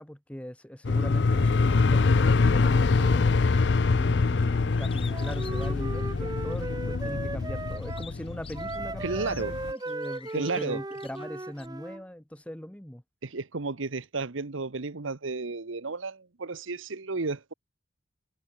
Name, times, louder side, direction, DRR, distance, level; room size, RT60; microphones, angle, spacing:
voice 1, 0.0-3.3 3.9-13.0, equal, 5° left, 0.9 m, -40 dB
sound 1, 0.8-9.7, left 4 dB, 60° left, 0.5 m, -25 dB
Bird, 4.7-6.7 7.2-11.7, left 7 dB, 30° left, 2.4 m, -50 dB
Wind instrument woodwind instrument, 5.1-8.1 8.5-12.0, right 2 dB, 20° right, 0.7 m, -37 dB
voice 2, 9.0-9.6 10.3-10.8 13.2-17.5, right 3 dB, 80° right, 1.1 m, -32 dB
head